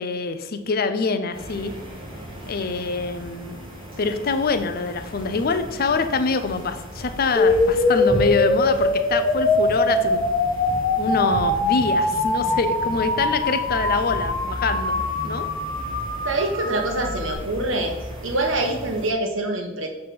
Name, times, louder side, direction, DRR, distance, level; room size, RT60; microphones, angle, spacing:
voice 1, 0.0-1.7 2.5-3.6 4.0-10.2 11.0-15.5, left 4 dB, 50° left, 9 dB, 0.5 m, -25 dB
sound 1, 1.3-19.1, equal, 25° right, 1.6 m, -36 dB
sound 2, 7.4-17.4, left 2 dB, 20° left, 1.2 m, -23 dB
voice 2, 16.2-17.9 18.2-19.9, right 2 dB, 75° right, 3 dB, 1.2 m, -25 dB
6.5 x 3.6 x 5.9 m, 1.1 s
head